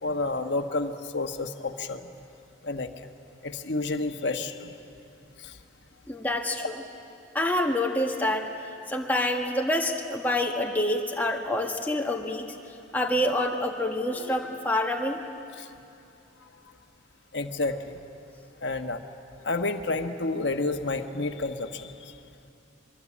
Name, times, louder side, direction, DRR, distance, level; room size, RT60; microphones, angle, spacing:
voice 1, 0.0-2.0 2.6-2.9 3.4-4.7 5.4-5.6 15.6-15.7 17.3-18.0 18.6-19.0 19.4-22.1, left 2 dB, 60° left, 5 dB, 1.3 m, -30 dB
voice 2, 6.1-6.7 7.3-8.5 8.9-12.5 12.9-15.2, left 1 dB, 10° left, 1 dB, 1.6 m, -27 dB
23.5 x 23.5 x 8.6 m, 2.7 s
head